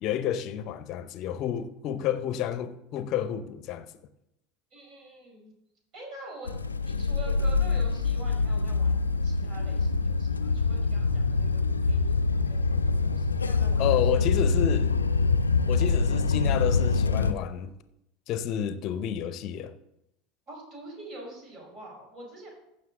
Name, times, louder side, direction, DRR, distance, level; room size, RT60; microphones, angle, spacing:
voice 1, 0.0-3.9 13.8-14.9 15.7-17.7 18.3-19.7, left 10 dB, 45° left, 0.7 m, -30 dB
voice 2, 4.7-5.5 5.9-14.4 20.5-22.5, right 1 dB, 45° right, 4.6 m, -46 dB
sound 1, 6.5-17.3, left 4 dB, 80° left, 0.5 m, -25 dB
15.0 x 6.5 x 3.7 m
figure-of-eight pair, 75°, 0 cm